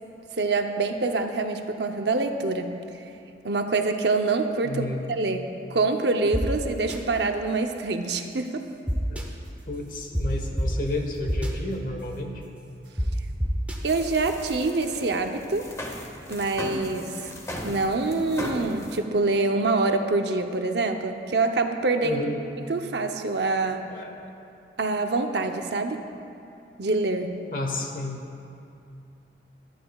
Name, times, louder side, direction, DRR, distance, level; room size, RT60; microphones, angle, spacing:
voice 1, 0.4-2.8 3.4-8.7 13.8-15.7 16.3-17.2 17.6-22.2 22.7-23.9 24.8-26.0 26.8-27.5, right 3 dB, 70° right, 5 dB, 0.7 m, -25 dB
voice 2, 4.6-5.0 9.1-9.3 9.7-12.4 22.0-22.4 23.9-24.2 27.5-28.2, left 2 dB, 50° left, 2 dB, 1.2 m, -31 dB
sound 1, 6.3-6.4 6.9-7.0 8.9-9.2 10.1-10.2 10.6-10.7 11.3-11.5 13.0-13.1 13.4-13.8, equal, 10° right, 0.9 m, -26 dB
sound 2, 13.9-19.0, left 1 dB, 15° left, 0.9 m, -37 dB
19.5 x 12.0 x 2.4 m, 2.7 s
head